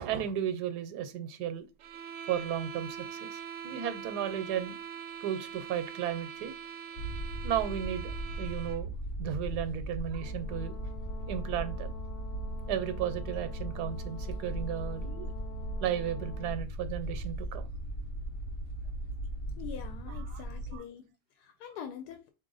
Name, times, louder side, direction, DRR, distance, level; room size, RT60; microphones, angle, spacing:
voice 1, 0.0-1.7 2.3-4.8 5.2-6.5 7.4-8.9 9.2-10.7 11.3-12.0 12.7-15.3 15.8-17.7 20.3-20.4 20.7-20.8, right 9 dB, 90° right, 1.2 m, -34 dB
sound 1, 1.8-8.9, right 8 dB, 70° right, 0.7 m, -43 dB
sound 2, 7.0-20.8, right 1 dB, 45° left, 0.8 m, -38 dB
Brass instrument, 10.2-16.6, left 10 dB, 70° left, 0.5 m, -50 dB
voice 2, 19.6-22.3, left 8 dB, 90° left, 1.2 m, -44 dB
4.1 x 2.8 x 3.9 m
omnidirectional pair, 1.7 m